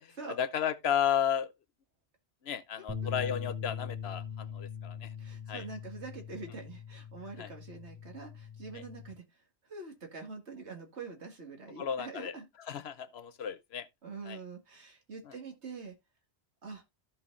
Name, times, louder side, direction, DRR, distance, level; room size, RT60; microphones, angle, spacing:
voice 1, 0.4-1.5 2.4-5.1 5.5-5.6 7.4-7.5 8.7-8.8 11.8-12.3 12.7-13.9 14.3-14.4 15.3-15.4, left 9 dB, 70° left, 1.0 m, -33 dB
sound 1, 2.9-9.1, left 7 dB, 15° right, 1.7 m, -41 dB
voice 2, 5.2-9.2 9.7-12.5 14.0-16.0 16.6-16.8, right 4 dB, 80° right, 2.2 m, -45 dB
14.5 x 5.5 x 2.5 m
omnidirectional pair, 1.1 m